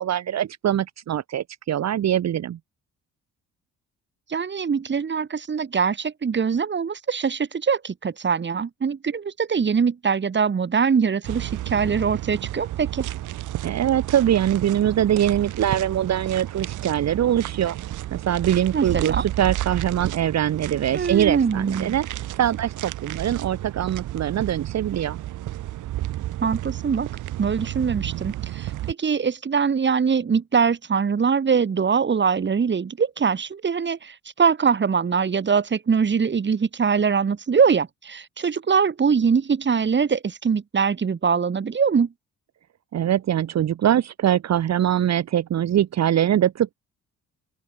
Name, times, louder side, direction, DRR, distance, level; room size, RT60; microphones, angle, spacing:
voice 1, 0.0-2.6 13.6-17.8 18.1-25.2 42.9-46.7, right 10 dB, 60° right, 1.7 m, -23 dB
voice 2, 4.3-13.1 18.7-19.2 20.9-22.0 26.4-27.1 27.4-42.1, right 6 dB, 40° right, 2.8 m, -22 dB
sound 1, 11.2-28.9, right 14 dB, 80° right, 1.9 m, -32 dB
open air
cardioid pair, 90°, 30 cm